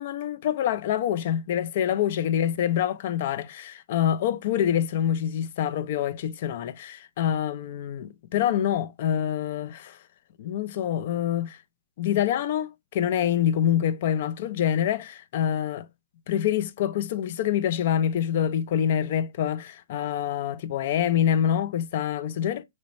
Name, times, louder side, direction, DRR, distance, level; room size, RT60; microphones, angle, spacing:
voice 1, 0.0-10.0 10.4-11.6 12.0-15.9 16.3-22.6, left 10 dB, 50° left, 0.4 m, -26 dB
3.1 x 3.0 x 2.6 m
hypercardioid pair, 125°, 0 cm